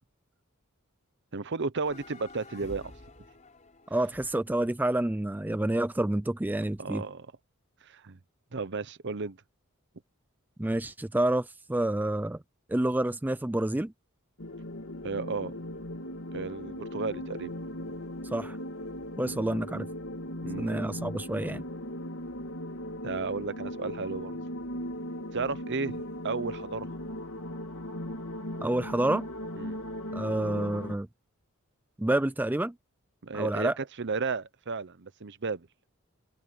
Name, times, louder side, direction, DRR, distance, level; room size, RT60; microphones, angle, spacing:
voice 1, 1.3-2.9 6.8-7.3 7.8-8.2 8.5-9.4 15.0-15.5 16.3-17.5 20.4-20.9 23.0-24.4 25.3-26.9 29.6-29.8 33.2-35.7, right 4 dB, 55° right, 0.9 m, -34 dB
sound 1, 1.8-6.1, left 2 dB, 35° left, 5.1 m, -51 dB
voice 2, 3.9-7.0 10.6-12.4 12.7-13.9 18.3-18.6 19.2-19.9 20.6-21.6 28.6-29.3 30.1-31.1 32.0-32.7 33.3-33.7, right 1 dB, 10° right, 0.4 m, -28 dB
sound 2, 14.4-30.9, left 1 dB, 70° left, 3.0 m, -38 dB
head